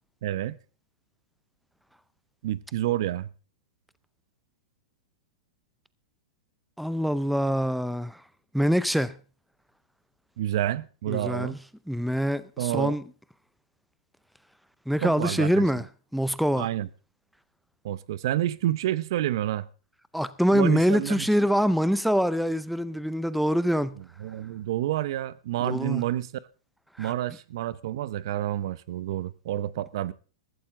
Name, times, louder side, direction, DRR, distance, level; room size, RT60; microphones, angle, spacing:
voice 1, 0.2-0.6 2.4-3.3 10.4-11.6 12.6-13.0 15.0-15.6 16.6-16.9 17.8-19.7 20.5-21.2 24.2-26.3 27.0-30.1, right 13 dB, 60° right, 0.8 m, -29 dB
voice 2, 6.8-8.2 8.5-9.2 11.1-11.6 11.9-13.0 14.9-15.9 16.1-16.7 20.1-24.0 25.6-26.0 27.0-27.1, equal, ahead, 0.6 m, -25 dB
15.0 x 13.5 x 3.7 m
hypercardioid pair, 130°, 3 cm